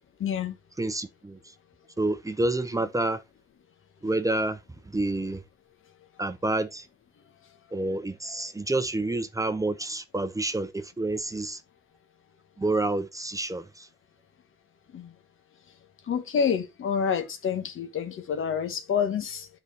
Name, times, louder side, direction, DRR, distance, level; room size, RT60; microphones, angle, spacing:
voice 1, 0.2-0.6 14.9-15.1 16.1-19.5, left 7 dB, 80° left, 1.2 m, -28 dB
voice 2, 0.8-1.4 2.0-3.2 4.0-4.6 4.9-5.4 6.2-6.9 7.7-11.6 12.6-13.9, right 2 dB, 15° right, 0.6 m, -28 dB
9.0 x 4.2 x 3.3 m
cardioid pair, 110°, 21 cm